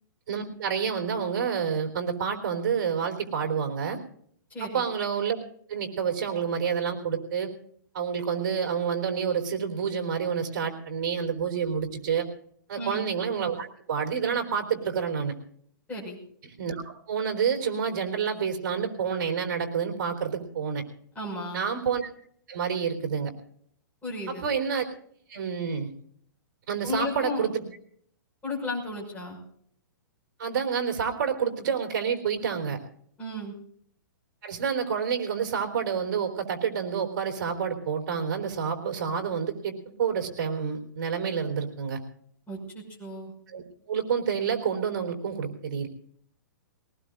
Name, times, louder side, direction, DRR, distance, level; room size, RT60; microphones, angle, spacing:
voice 1, 0.3-4.0 4.6-5.4 5.7-7.5 7.9-12.3 12.7-15.3 16.4-20.8 21.5-22.1 22.5-23.3 24.3-24.9 25.3-25.9 26.7-27.6 30.4-32.8 34.4-42.0 43.5-45.9, right 7 dB, 55° right, 3 dB, 3.7 m, -28 dB
voice 2, 4.5-4.8 12.8-13.1 15.9-16.2 21.1-21.6 24.0-24.4 26.8-27.5 28.4-29.4 33.2-33.5 42.5-43.3, left 2 dB, 10° left, -2 dB, 5.9 m, -34 dB
21.0 x 19.0 x 2.6 m, 0.65 s
hypercardioid pair, 150°, 11 cm